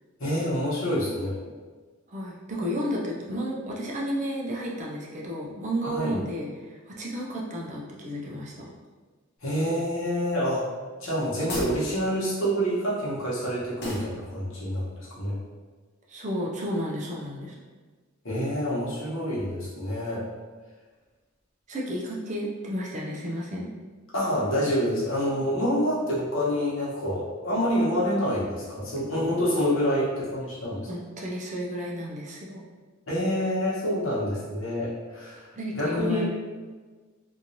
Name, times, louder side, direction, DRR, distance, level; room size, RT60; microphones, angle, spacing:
voice 1, 0.2-1.4 5.8-6.2 9.4-10.6 11.0-15.4 18.2-20.2 24.1-30.8 33.1-35.5 35.8-36.3, equal, 70° left, -7 dB, 1.1 m, -27 dB
voice 2, 2.1-8.7 16.1-17.6 21.7-23.7 30.9-32.7 35.5-36.3, equal, 35° right, -3 dB, 0.5 m, -32 dB
sound 1, 11.4-11.8 13.8-14.1, equal, 55° left, 0.7 m, -34 dB
3.0 x 2.6 x 2.7 m, 1.4 s
head